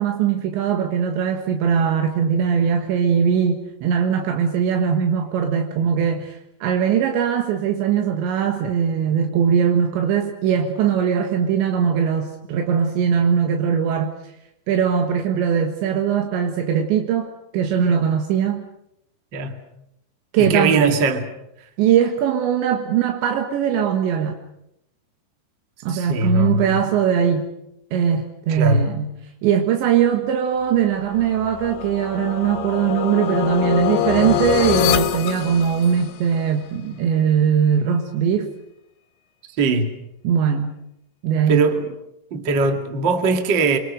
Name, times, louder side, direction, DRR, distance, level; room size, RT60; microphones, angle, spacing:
voice 1, 0.0-14.1 14.7-18.7 20.3-21.0 21.8-24.4 25.8-27.5 27.9-29.1 29.4-38.5 40.2-40.8 41.2-41.7, right 8 dB, 80° right, 3.9 m, -20 dB
voice 2, 20.4-21.3 25.9-26.8 28.5-28.9 39.6-39.9 41.5-41.9 42.3-43.8, right 3 dB, 35° right, 2.1 m, -20 dB
sound 1, 31.1-36.3, left 11 dB, 85° left, 4.1 m, -24 dB
29.0 x 25.5 x 6.4 m
omnidirectional pair, 5.1 m